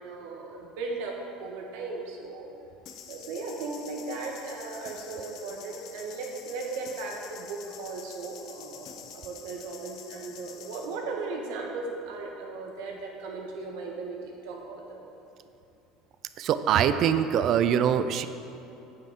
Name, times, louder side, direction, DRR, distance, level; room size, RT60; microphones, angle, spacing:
voice 1, 0.0-2.5 3.1-15.0, right 3 dB, 80° right, 0 dB, 1.4 m, -37 dB
sound 1, 2.9-11.0, left 8 dB, 55° left, 0.7 m, -47 dB
voice 2, 16.4-18.3, right 9 dB, 50° right, 11 dB, 0.4 m, -23 dB
8.9 x 7.8 x 3.7 m, 2.8 s
supercardioid pair, 125°, 0 cm